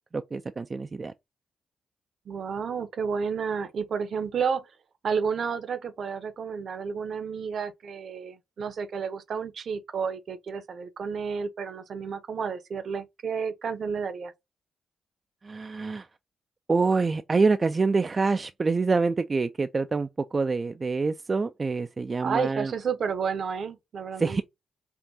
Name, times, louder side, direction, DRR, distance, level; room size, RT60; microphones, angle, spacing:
voice 1, 0.1-1.1 15.4-16.1 16.7-22.7 24.2-24.4, right 4 dB, 40° right, 0.3 m, -26 dB
voice 2, 2.3-4.7 5.0-14.3 22.2-24.4, right 6 dB, 65° right, 0.7 m, -31 dB
4.6 x 2.5 x 2.7 m
hypercardioid pair, 45°, 0 cm